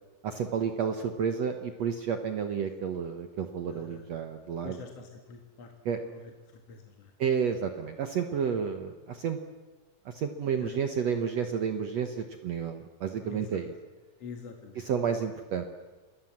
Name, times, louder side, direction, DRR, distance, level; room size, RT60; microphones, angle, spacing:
voice 1, 0.2-4.8 5.9-6.0 7.2-9.4 10.1-13.7 14.8-15.7, right 7 dB, 60° right, 6 dB, 1.9 m, -31 dB
voice 2, 3.7-4.0 4.6-5.7 6.0-6.2 6.7-7.1 10.6-10.7 13.2-13.6 14.2-14.8, left 5 dB, 50° left, 3 dB, 2.7 m, -45 dB
28.5 x 21.5 x 7.4 m, 1.2 s
omnidirectional pair, 4.2 m